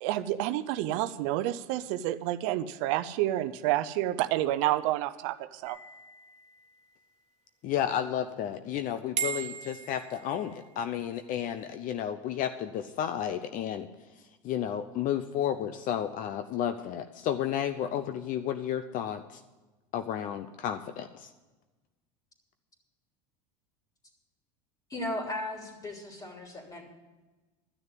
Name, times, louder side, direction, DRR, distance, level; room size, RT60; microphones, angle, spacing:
voice 1, 0.0-5.8, right 14 dB, 70° right, 13 dB, 0.6 m, -29 dB
sound 1, 5.7-7.2 9.2-10.8, right 7 dB, 45° right, 1.3 m, -38 dB
voice 2, 7.6-13.9 14.2-19.4 19.9-21.3, left 10 dB, 50° left, 10 dB, 0.7 m, -32 dB
voice 3, 24.9-26.8, left 1 dB, 20° left, 2 dB, 3.1 m, -36 dB
12.5 x 6.6 x 9.1 m, 1.2 s
supercardioid pair, 100°, 17 cm